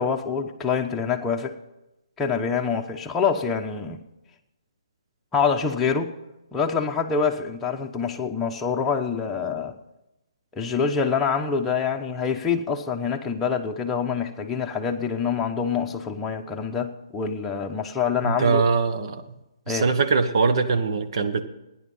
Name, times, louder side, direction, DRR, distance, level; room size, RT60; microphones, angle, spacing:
voice 1, 0.0-1.6 2.2-4.0 5.3-6.1 6.5-9.7 10.5-18.6 19.7-19.8, left 6 dB, 10° left, 1 dB, 1.0 m, -26 dB
voice 2, 18.2-19.2 19.7-21.4, right 4 dB, 55° right, 9 dB, 1.3 m, -22 dB
15.5 x 10.5 x 5.6 m, 0.95 s
hypercardioid pair, 150°, 3 cm